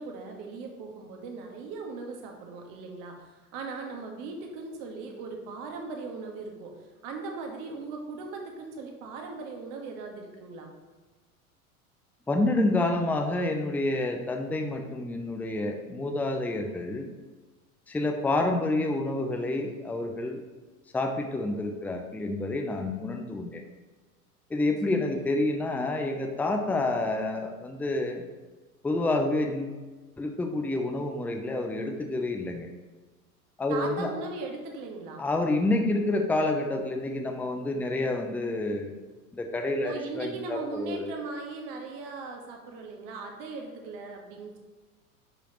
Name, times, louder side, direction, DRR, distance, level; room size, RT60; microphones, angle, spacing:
voice 1, 0.0-10.7 24.9-25.3 33.7-35.2 39.8-44.6, right 3 dB, 45° right, 2 dB, 1.6 m, -39 dB
voice 2, 12.3-17.1 17.9-20.4 20.9-23.6 24.5-28.2 28.8-29.8 30.2-32.7 33.6-34.1 35.2-38.9 39.3-41.2, left 2 dB, 5° left, 4 dB, 0.6 m, -28 dB
10.5 x 5.0 x 3.0 m, 1.3 s
figure-of-eight pair, 85°, 44 cm